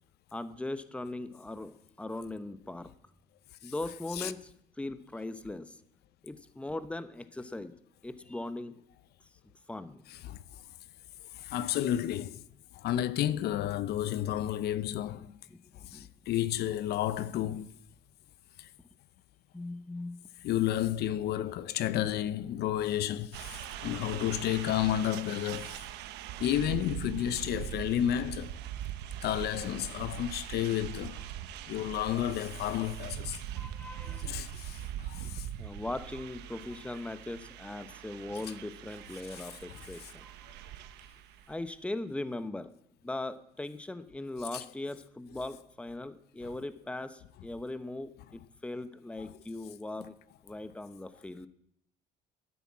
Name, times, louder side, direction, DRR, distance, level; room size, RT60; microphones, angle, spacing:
voice 1, 0.3-2.9 3.6-5.8 6.2-7.8 8.0-8.8 9.7-10.0 15.5-16.1 19.5-20.2 32.2-32.3 33.6-34.3 35.6-40.4 40.8-40.9 41.5-42.7 43.0-50.1 50.4-51.5, left 2 dB, 5° left, 0.9 m, -39 dB
voice 2, 10.1-10.4 11.3-12.4 12.7-15.4 15.9-17.7 18.6-18.7 20.4-25.8 26.4-28.6 29.2-31.2 31.7-33.4 34.2-35.5 39.3-39.5 40.0-40.1 44.5-44.6 46.4-46.5 50.0-50.1, left 12 dB, 70° left, 0.7 m, -31 dB
sound 1, 23.3-41.7, right 11 dB, 85° right, 1.1 m, -42 dB
11.0 x 10.0 x 8.5 m
cardioid pair, 110°, 17 cm